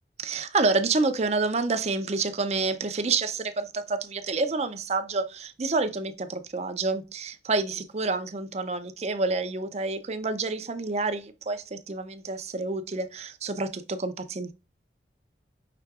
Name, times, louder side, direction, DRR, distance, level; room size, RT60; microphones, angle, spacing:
voice 1, 0.2-14.5, right 3 dB, 35° right, 0.5 m, -28 dB
5.8 x 3.7 x 2.3 m
head